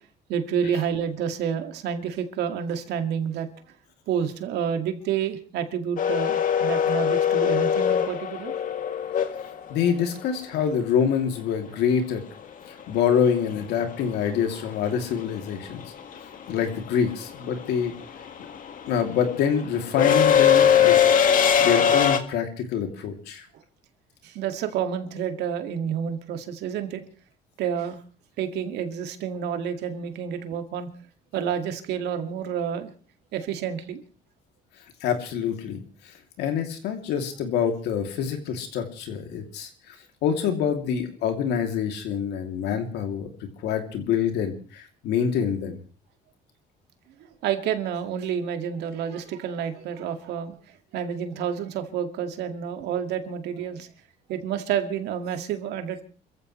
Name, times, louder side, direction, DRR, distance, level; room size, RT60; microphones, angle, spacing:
voice 1, 0.3-3.5 4.1-8.5 24.2-27.0 27.6-28.0 28.4-30.9 31.3-32.9 33.3-34.0 47.4-50.5 50.9-53.9 54.3-56.0, right 8 dB, 80° right, 7 dB, 2.2 m, -29 dB
sound 1, 6.0-10.0 12.4-12.5 13.8-14.1 14.4-22.2, left 8 dB, 55° left, 1.9 m, -21 dB
voice 2, 9.7-12.2 12.9-15.8 16.5-17.9 18.9-21.0 21.6-23.4 35.0-35.8 36.4-39.9 40.2-43.3 43.6-45.8, left 7 dB, 85° left, 5 dB, 2.9 m, -26 dB
29.5 x 14.5 x 3.2 m, 0.39 s
cardioid pair, 110°, 17 cm